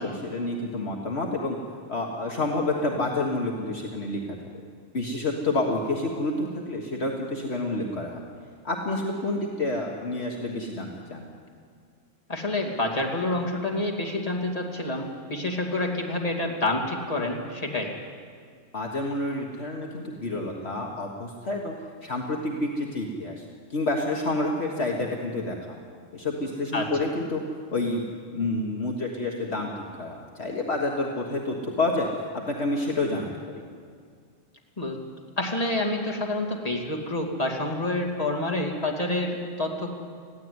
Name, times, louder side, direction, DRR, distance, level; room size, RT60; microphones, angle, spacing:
voice 1, 0.0-1.6 1.9-4.4 4.9-8.2 8.6-11.3 18.7-21.8 22.0-25.8 26.1-27.4 27.7-28.0 28.3-29.7 30.0-32.1 32.5-33.6, left 2 dB, 55° left, 0 dB, 1.8 m, -29 dB
voice 2, 12.3-17.9 26.7-26.9 34.8-35.0 35.4-39.9, left 2 dB, 30° left, 0 dB, 2.6 m, -28 dB
20.5 x 15.5 x 9.6 m, 2.1 s
omnidirectional pair, 1.3 m